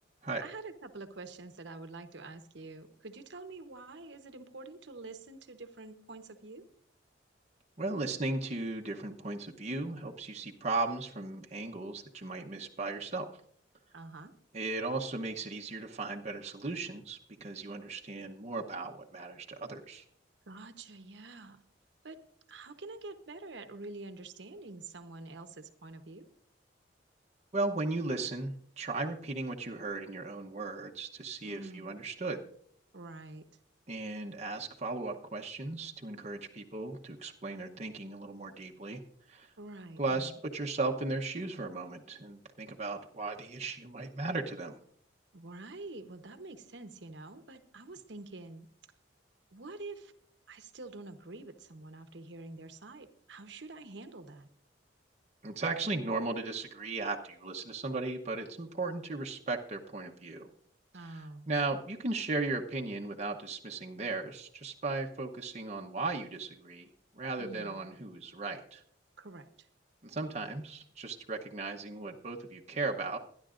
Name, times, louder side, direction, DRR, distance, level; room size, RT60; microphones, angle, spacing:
voice 1, 0.4-6.6 13.9-14.3 20.5-21.6 22.0-22.2 22.5-26.3 31.4-31.9 32.9-33.5 39.6-40.3 45.3-48.7 49.5-50.1 50.5-54.5 60.9-61.5 67.4-67.8 69.2-69.7, right 3 dB, 65° right, 8 dB, 1.0 m, -47 dB
voice 2, 7.8-13.4 14.5-20.0 27.5-32.4 33.9-39.0 39.3-39.5 40.0-44.8 55.4-60.5 61.0-66.9 67.1-68.8 70.0-73.2, right 3 dB, 35° right, 1 dB, 0.9 m, -36 dB
24.5 x 10.5 x 2.5 m, 0.64 s
head